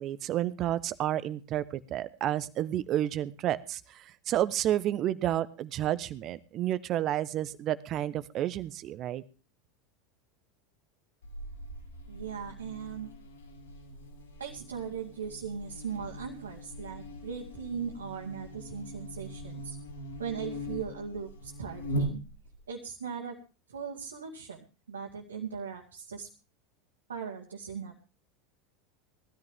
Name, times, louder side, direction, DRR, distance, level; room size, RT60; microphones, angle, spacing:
voice 1, 0.0-9.2, right 12 dB, 45° right, 15 dB, 1.0 m, -31 dB
Buzz, 11.2-22.6, equal, 85° left, 5.5 m, -41 dB
voice 2, 12.1-13.1 14.4-19.8 20.2-22.2 22.7-23.4 23.7-26.3 27.1-28.1, right 6 dB, 80° right, 0 dB, 2.1 m, -39 dB
19.0 x 13.5 x 3.6 m, 0.33 s
figure-of-eight pair, 80°, 0 cm